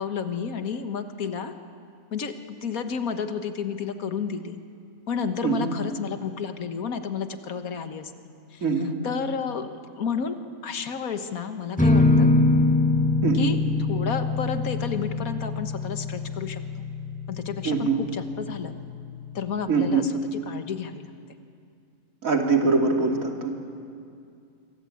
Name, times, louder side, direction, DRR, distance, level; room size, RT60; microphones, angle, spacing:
voice 1, 0.0-1.5 2.1-4.6 5.1-8.1 8.5-8.6 9.0-10.4 10.6-12.3 13.3-13.6 13.9-16.8 17.3-18.8 19.4-21.1, left 6 dB, 85° left, 8 dB, 1.8 m, -31 dB
voice 2, 5.4-5.7 8.6-8.9 13.2-13.5 17.6-18.0 19.7-20.1 22.2-23.5, right 4 dB, 75° right, 2 dB, 3.0 m, -23 dB
sound 1, 11.8-19.4, left 3 dB, 5° left, 1.9 m, -24 dB
27.5 x 24.0 x 8.6 m, 2.4 s
omnidirectional pair, 1.4 m